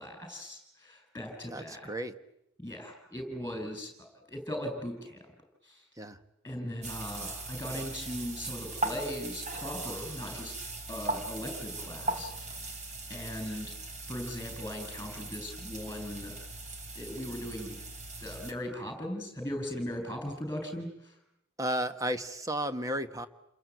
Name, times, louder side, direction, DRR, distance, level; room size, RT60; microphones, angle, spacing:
voice 1, 0.0-1.9 2.6-5.3 5.6-5.8 6.4-10.5 10.9-12.3 13.1-13.7 14.1-16.4 16.9-17.8 18.2-21.2, left 1 dB, 10° left, 5 dB, 6.8 m, -39 dB
voice 2, 1.5-2.1 6.0-6.2 21.6-23.3, right 1 dB, 15° right, 9 dB, 1.3 m, -33 dB
sound 1, 6.8-18.5, right 2 dB, 35° right, 3.3 m, -39 dB
29.0 x 22.0 x 9.3 m, 0.81 s
head